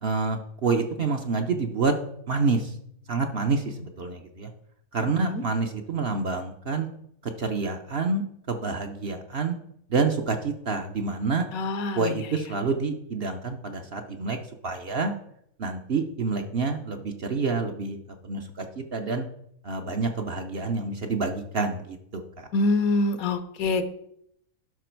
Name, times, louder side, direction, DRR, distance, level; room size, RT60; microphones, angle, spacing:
voice 1, 0.0-1.9 2.3-2.7 3.1-4.5 4.9-6.9 7.2-9.6 9.9-11.5 12.0-14.4 14.6-15.1 15.6-18.0 18.2-19.3 19.6-22.5, right 4 dB, 50° right, 5 dB, 0.8 m, -28 dB
voice 2, 11.5-12.1 22.5-23.8, left 3 dB, 70° left, 10 dB, 1.2 m, -25 dB
11.0 x 5.8 x 4.5 m, 0.74 s
omnidirectional pair, 1.6 m